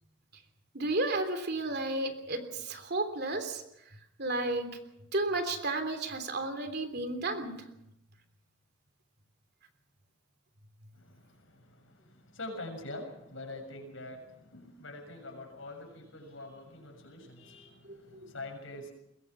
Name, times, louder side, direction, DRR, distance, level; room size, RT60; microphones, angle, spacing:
voice 1, 0.7-3.6 4.2-4.7 5.1-7.5 17.8-18.3, right 2 dB, 50° right, 7 dB, 3.3 m, -32 dB
voice 2, 10.9-18.9, left 2 dB, 70° left, 3 dB, 7.2 m, -45 dB
22.5 x 22.0 x 6.2 m, 0.81 s
head